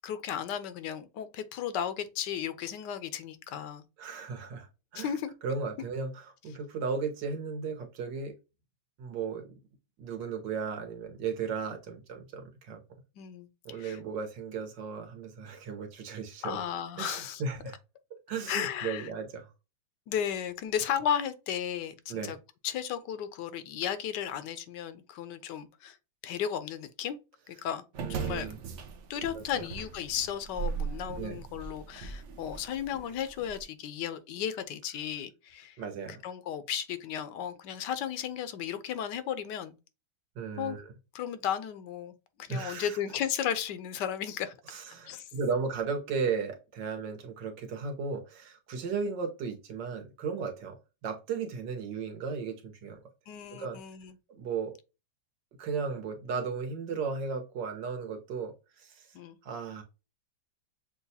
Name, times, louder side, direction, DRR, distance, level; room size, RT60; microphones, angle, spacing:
voice 1, 0.0-3.8 4.9-5.3 13.2-14.0 16.4-17.4 18.5-19.1 20.1-22.4 22.6-26.0 26.2-27.2 27.5-27.8 28.1-28.5 29.1-35.8 36.2-39.7 40.6-40.8 41.1-44.5 45.0-45.3 53.3-54.2 59.1-59.4, left 9 dB, 80° left, 1.3 m, -34 dB
voice 2, 4.0-4.7 4.9-5.1 5.4-8.3 9.0-9.5 10.0-12.8 13.7-16.6 17.0-17.8 18.3-19.5 22.1-22.4 28.0-28.6 29.3-29.7 31.2-31.4 35.8-36.2 40.4-40.8 42.5-43.0 44.7-50.8 51.0-53.0 53.5-53.8 54.4-54.8 55.6-59.1 59.4-59.8, right 5 dB, 85° right, 1.7 m, -35 dB
sound 1, 27.9-33.6, right 6 dB, 60° right, 0.8 m, -39 dB
6.8 x 2.3 x 2.7 m
omnidirectional pair, 1.9 m